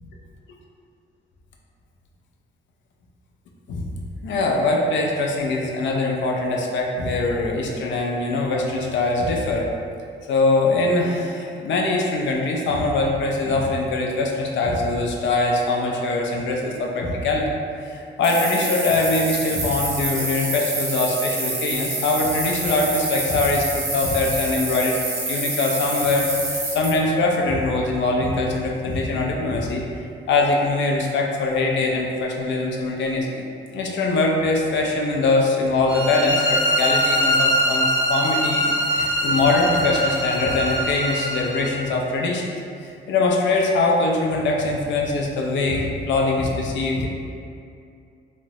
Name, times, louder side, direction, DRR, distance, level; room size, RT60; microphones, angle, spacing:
voice 1, 4.2-9.7 10.3-17.6 17.8-25.0 25.3-29.9 30.3-33.4 33.7-42.5 42.8-47.1, left 2 dB, 70° left, -1 dB, 0.5 m, -22 dB
sound 1, 18.2-26.9, right 2 dB, 80° right, 1.2 m, -27 dB
sound 2, 35.9-41.7, equal, 15° left, 0.5 m, -22 dB
3.4 x 2.0 x 2.7 m, 2.4 s
cardioid pair, 90°, 20 cm